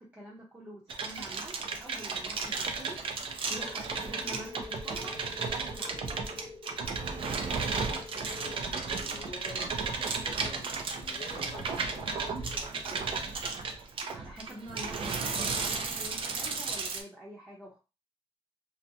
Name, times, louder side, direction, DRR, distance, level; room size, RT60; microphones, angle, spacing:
voice 1, 0.0-3.0 3.5-5.2 5.4-6.0 14.1-17.8, right 1 dB, 20° right, -6 dB, 0.7 m, -46 dB
sound 1, 0.9-17.0, right 4 dB, 55° right, 0.5 m, -34 dB
sound 2, 3.6-8.6, left 5 dB, 85° left, 0.7 m, -47 dB
voice 2, 7.5-13.2, left 2 dB, 50° left, -1 dB, 0.7 m, -48 dB
2.6 x 2.1 x 2.7 m, 0.30 s
wide cardioid pair, 130°, 11 cm